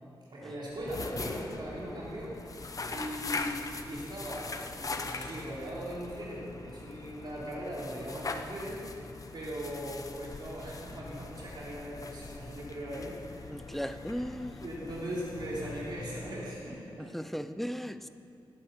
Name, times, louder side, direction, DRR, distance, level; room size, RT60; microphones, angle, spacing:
voice 1, 0.3-4.5 4.8-9.0 9.3-13.9 14.5-17.1, equal, 60° right, -6 dB, 3.8 m, -39 dB
sound 1, 0.7-16.8, left 3 dB, 40° left, 0.9 m, -41 dB
voice 2, 13.5-14.6 17.1-18.1, equal, ahead, 11 dB, 0.6 m, -36 dB
19.0 x 10.0 x 5.8 m, 2.4 s
wide cardioid pair, 120°, 9 cm